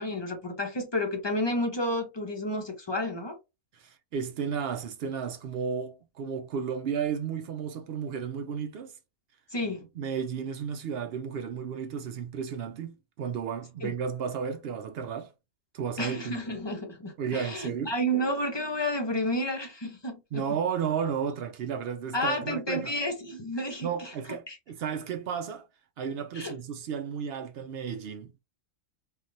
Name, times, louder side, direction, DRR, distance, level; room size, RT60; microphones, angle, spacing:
voice 1, 0.0-3.4 9.5-9.8 13.8-13.9 16.0-20.4 22.1-24.1 24.5-24.6 26.3-26.5, equal, 30° left, 0.5 m, -31 dB
voice 2, 3.7-8.9 10.0-15.3 15.7-16.4 17.2-17.9 20.3-22.9 23.8-25.6 26.0-28.4, right 7 dB, 65° right, 0.6 m, -33 dB
3.4 x 2.4 x 2.6 m
omnidirectional pair, 1.5 m